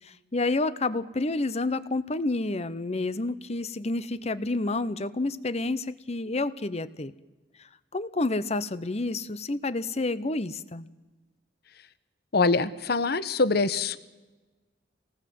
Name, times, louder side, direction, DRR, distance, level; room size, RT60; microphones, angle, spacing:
voice 1, 0.0-7.1 7.9-10.9, left 2 dB, 35° left, 15 dB, 0.8 m, -29 dB
voice 2, 12.3-14.0, left 3 dB, 55° left, 13 dB, 1.0 m, -24 dB
26.5 x 19.0 x 7.7 m, 1.2 s
head